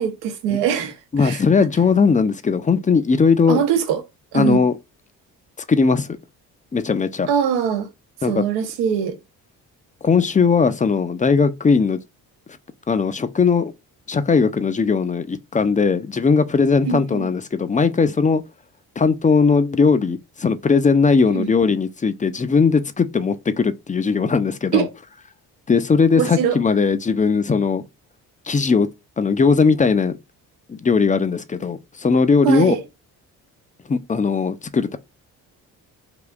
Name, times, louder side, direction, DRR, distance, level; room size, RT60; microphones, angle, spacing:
voice 1, 0.0-1.7 3.5-4.0 4.3-4.6 7.3-7.9 8.3-9.1 16.8-17.3 21.3-21.5 24.7-24.9 26.2-26.6 32.4-32.8, right 8 dB, 80° right, 0.8 m, -22 dB
voice 2, 1.1-3.6 4.3-4.8 5.7-6.2 6.7-7.3 8.2-8.4 10.0-12.0 12.9-13.7 14.1-18.4 19.0-24.9 25.7-27.8 28.5-28.9 29.2-30.2 30.7-32.8 33.9-35.0, left 5 dB, 20° left, 0.4 m, -18 dB
3.5 x 2.5 x 2.3 m
hypercardioid pair, 50°, 43 cm